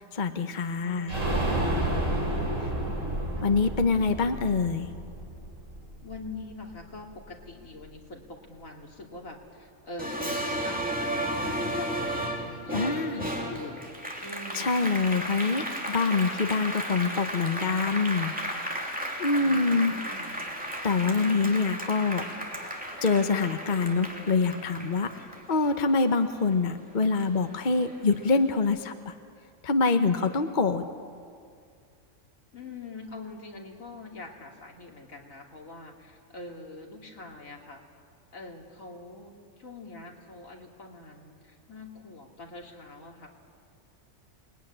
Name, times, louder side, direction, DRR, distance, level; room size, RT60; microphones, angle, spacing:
voice 1, 0.2-1.1 3.4-4.9 12.7-13.2 14.5-18.7 19.2-19.9 20.8-22.3 23.0-25.1 25.5-29.1 29.6-30.8, left 4 dB, 35° left, 7 dB, 1.1 m, -25 dB
voice 2, 0.8-1.2 3.4-3.7 6.0-12.3 12.6-13.9 14.2-15.0 19.3-20.6 32.5-37.8 38.3-43.3, left 2 dB, 75° left, 0 dB, 3.3 m, -44 dB
sound 1, 1.1-6.7 7.0-7.1 7.4-7.5, right 1 dB, 65° right, 5.3 m, -30 dB
Applause, 10.0-26.8 27.2-28.4, equal, 5° right, 2.9 m, -34 dB
28.5 x 20.5 x 9.9 m, 2.3 s
omnidirectional pair, 1.4 m